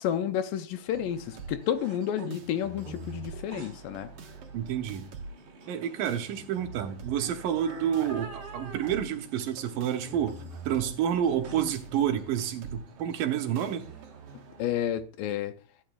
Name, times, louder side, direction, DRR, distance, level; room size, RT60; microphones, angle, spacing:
voice 1, 0.0-4.1 14.6-15.5, left 10 dB, 80° left, 2.1 m, -30 dB
sound 1, 0.9-14.9, right 4 dB, 55° right, 1.9 m, -46 dB
sound 2, 1.1-14.8, right 2 dB, 35° right, 3.3 m, -48 dB
voice 2, 4.5-5.1 5.7-13.8, right 9 dB, 75° right, 2.4 m, -29 dB
14.0 x 8.6 x 2.3 m
omnidirectional pair, 4.3 m